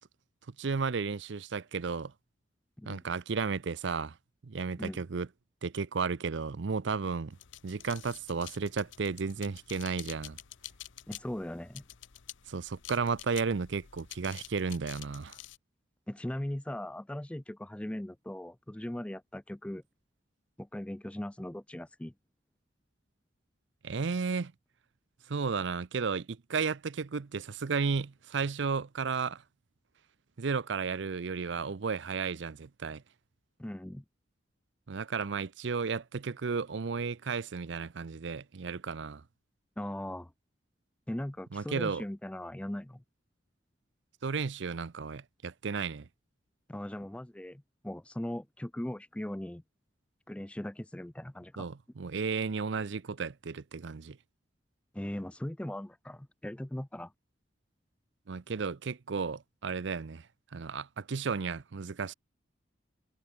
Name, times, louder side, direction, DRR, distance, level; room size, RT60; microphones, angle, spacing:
voice 1, 0.6-2.1 2.8-4.1 4.4-5.3 5.6-7.4 7.6-10.4 12.5-15.4 23.8-24.5 25.3-29.4 30.4-33.0 34.9-39.2 41.5-42.0 44.2-46.1 51.6-54.2 58.3-60.3 60.5-62.1, right 5 dB, 70° right, 0.6 m, -33 dB
sound 1, 7.3-15.6, left 13 dB, 75° left, 0.8 m, -49 dB
voice 2, 11.1-11.8 16.1-19.8 20.6-22.1 33.6-34.0 39.8-40.3 41.1-43.0 46.7-49.6 50.3-51.7 54.9-57.1, left 1 dB, 5° left, 0.3 m, -39 dB
head